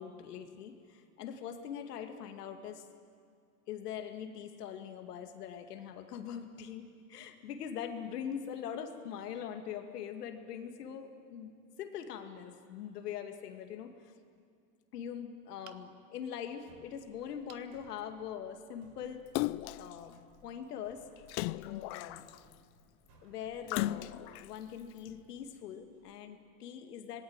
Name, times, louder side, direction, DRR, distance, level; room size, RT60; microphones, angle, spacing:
voice 1, 0.0-2.9 3.7-11.5 11.8-14.1 14.9-19.3 19.8-21.1 21.5-22.3 23.2-27.2, left 8 dB, 85° left, 6 dB, 2.3 m, -42 dB
sound 1, 15.6-16.2 17.5-17.7 18.3-18.4 18.7-18.8, right 12 dB, 80° right, 1.3 m, -57 dB
sound 2, 16.5-26.0, right 1 dB, 55° right, 5.7 m, -65 dB
Splash splatter, 19.3-19.9 21.3-22.5 23.7-24.5 25.1-25.2, left 18 dB, 65° left, 0.7 m, -35 dB
26.0 x 20.5 x 8.9 m, 2.3 s
hypercardioid pair, 95°, 46 cm